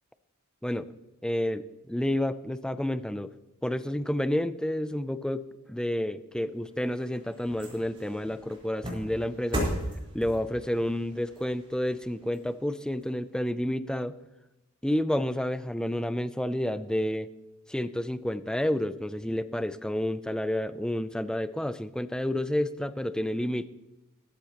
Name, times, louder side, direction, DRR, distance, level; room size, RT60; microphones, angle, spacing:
voice 1, 1.2-3.3 3.6-9.6 10.1-14.2 14.8-17.3 17.7-23.7, left 1 dB, 5° left, 13 dB, 0.4 m, -30 dB
sound 1, 6.5-13.0 13.5-13.6, equal, 25° right, 4.2 m, -37 dB
14.5 x 13.5 x 3.0 m, 1.0 s
head